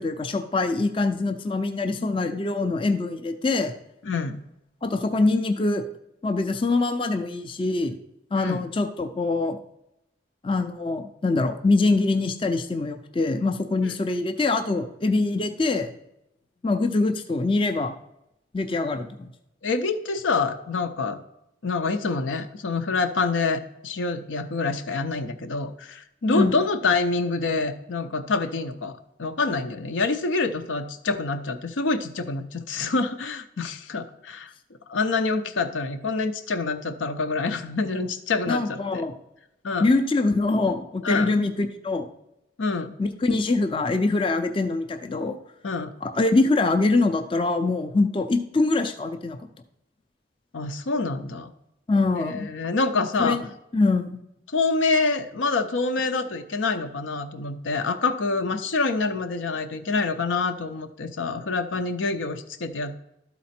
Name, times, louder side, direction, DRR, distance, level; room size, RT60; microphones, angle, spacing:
voice 1, 0.0-3.8 4.8-5.8 6.2-7.9 8.3-9.6 10.4-15.9 16.6-17.9 18.5-19.3 26.3-26.6 38.5-39.1 39.8-42.1 43.0-45.4 46.0-49.4 51.9-52.5 53.2-53.4 53.7-54.2, left 3 dB, 25° left, 6 dB, 0.4 m, -24 dB
voice 2, 4.0-4.4 8.3-8.7 13.8-14.0 19.6-21.2 21.6-34.5 34.9-39.0 39.6-39.9 41.0-41.3 42.6-43.0 45.6-45.9 50.5-51.5 52.1-53.4 54.5-63.0, left 3 dB, 85° left, 8 dB, 0.7 m, -26 dB
12.5 x 4.1 x 4.3 m, 0.84 s
head